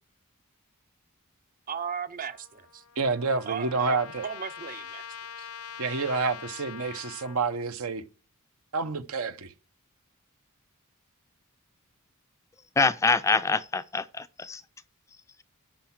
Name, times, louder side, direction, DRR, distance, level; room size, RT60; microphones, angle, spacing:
voice 1, 1.7-2.8 3.5-5.0 5.4-5.5, right 7 dB, 40° right, 0.7 m, -36 dB
Trumpet, 2.3-7.4, left 8 dB, 85° left, 0.8 m, -43 dB
voice 2, 3.0-4.3 5.8-8.0 8.7-9.5, right 4 dB, 70° right, 0.8 m, -28 dB
voice 3, 12.8-14.6, left 4 dB, 15° left, 0.4 m, -25 dB
10.0 x 5.8 x 7.3 m
head